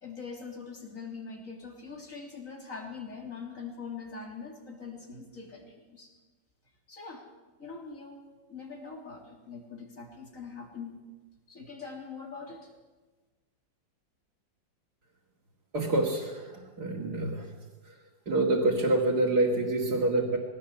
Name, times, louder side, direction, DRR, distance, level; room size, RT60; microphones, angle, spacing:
voice 1, 0.0-6.1 6.9-7.3 7.6-11.0 11.5-12.7, left 5 dB, 45° left, 1 dB, 3.8 m, -43 dB
voice 2, 15.7-17.5 17.8-18.0 18.3-20.4, right 2 dB, 55° right, -4 dB, 2.8 m, -27 dB
20.5 x 17.0 x 8.3 m, 1.3 s
omnidirectional pair, 2.0 m